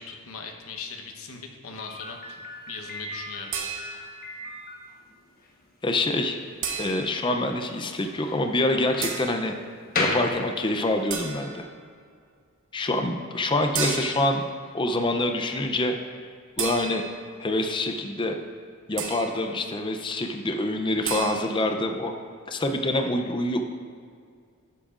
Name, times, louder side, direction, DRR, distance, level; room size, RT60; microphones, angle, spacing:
voice 1, 0.0-2.4 2.7-3.5, left 5 dB, 65° left, 3 dB, 1.0 m, -39 dB
Slam, 1.8-11.1, left 2 dB, 40° left, 1.1 m, -36 dB
sound 1, 3.5-4.2 6.6-7.3 9.0-9.4 11.1-11.7 13.7-14.4 16.6-17.3 19.0-19.4 21.0-21.4, right 6 dB, 60° right, 1.0 m, -32 dB
voice 2, 5.8-6.4 6.8-9.6 10.0-11.7 12.7-14.4 14.7-15.9 16.6-17.0 17.4-18.4 18.9-22.1 22.5-23.6, left 1 dB, 20° left, 5 dB, 0.5 m, -26 dB
12.5 x 8.6 x 2.5 m, 2.1 s
head